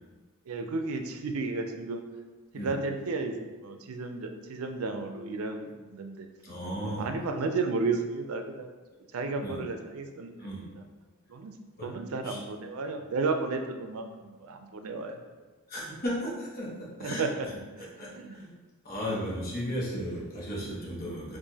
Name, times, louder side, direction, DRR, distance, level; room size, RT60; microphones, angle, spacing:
voice 1, 0.5-2.0 2.5-3.4 3.6-6.3 6.8-8.7 9.1-10.8 11.3-11.5 11.8-15.2 17.0-17.5 17.8-18.4 19.0-19.2, right 3 dB, 90° right, 5 dB, 0.4 m, -33 dB
voice 2, 6.4-7.1 9.4-9.6 10.4-10.7 11.8-11.9 12.2-12.4 15.7-17.2 18.0-18.1 18.4-18.5 18.8-21.4, equal, 45° left, -5 dB, 1.0 m, -35 dB
4.6 x 2.5 x 2.8 m, 1.3 s
head